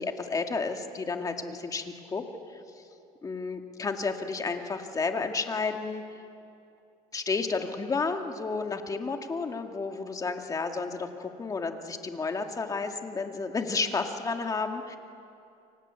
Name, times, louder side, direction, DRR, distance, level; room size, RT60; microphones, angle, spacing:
voice 1, 0.0-2.2 2.5-2.6 3.2-6.0 7.1-15.0, left 4 dB, 25° left, 4 dB, 2.2 m, -31 dB
29.0 x 24.5 x 8.4 m, 2.6 s
cardioid pair, 125°, 15 cm